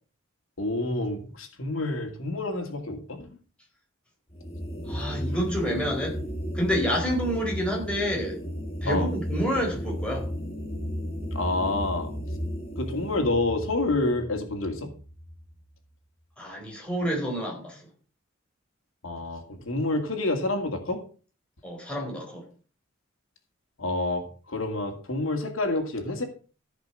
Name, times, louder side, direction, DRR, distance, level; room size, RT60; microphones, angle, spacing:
voice 1, 0.6-3.3 5.3-5.4 8.9-9.1 11.3-12.1 12.8-14.9 19.0-21.0 23.8-26.2, left 2 dB, 85° left, 5 dB, 2.2 m, -28 dB
sound 1, 4.3-15.6, equal, 30° left, 1.9 m, -34 dB
voice 2, 4.9-6.2 6.5-8.4 8.8-10.3 16.4-17.8 21.6-22.4, equal, 5° left, -1 dB, 4.3 m, -28 dB
15.0 x 5.3 x 6.4 m, 0.38 s
head